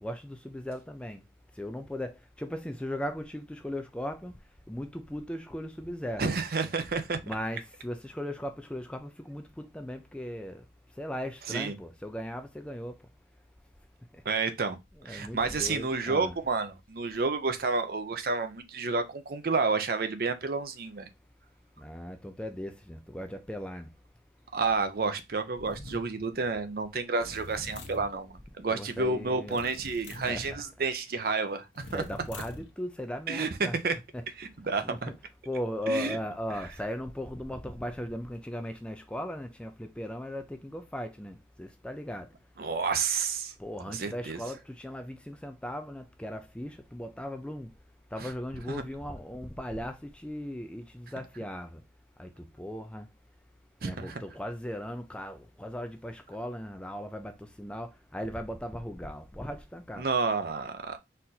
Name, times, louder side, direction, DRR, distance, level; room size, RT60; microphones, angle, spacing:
voice 1, 0.0-1.2 1.6-4.3 4.7-6.2 7.2-10.6 11.0-12.9 15.1-16.3 21.8-23.9 28.7-29.6 30.3-30.4 31.9-33.8 34.1-34.2 34.8-35.0 35.5-42.3 43.6-47.7 48.1-51.8 52.2-53.1 53.8-60.0, equal, 5° left, 0.3 m, -37 dB
voice 2, 6.2-7.2 11.5-11.8 14.3-14.8 15.0-21.1 24.5-32.0 33.3-34.0 34.4-35.1 35.9-36.2 42.6-43.5 43.9-44.4 48.2-48.3 48.7-48.8 53.8-54.2 60.0-61.0, right 4 dB, 50° right, 0.6 m, -30 dB
sound 1, 25.6-26.1 27.2-28.1 29.5-30.6 31.8-32.7, left 2 dB, 80° left, 0.8 m, -44 dB
4.2 x 2.5 x 3.9 m
head